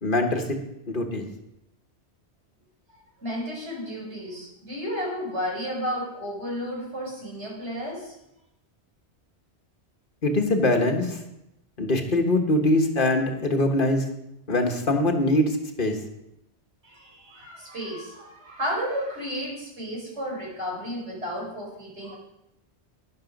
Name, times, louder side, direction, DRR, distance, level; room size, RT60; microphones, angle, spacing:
voice 1, 0.0-0.4 0.9-1.2 10.2-11.2 11.8-14.0 14.5-16.0, left 1 dB, 50° left, 4 dB, 1.5 m, -23 dB
voice 2, 3.2-8.1 16.8-22.2, equal, 80° right, -3 dB, 5.3 m, -32 dB
12.0 x 10.5 x 5.2 m, 0.86 s
omnidirectional pair, 1.1 m